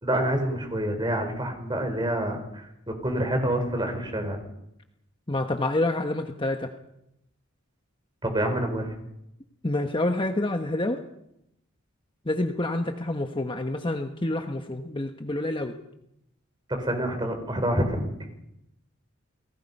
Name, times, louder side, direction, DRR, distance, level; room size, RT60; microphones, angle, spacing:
voice 1, 0.0-4.4 8.2-8.9 16.7-18.1, right 1 dB, 20° right, 5 dB, 4.5 m, -27 dB
voice 2, 5.3-6.7 9.6-11.0 12.2-15.7, left 2 dB, 25° left, 5 dB, 1.2 m, -28 dB
29.5 x 19.5 x 5.5 m, 0.83 s
head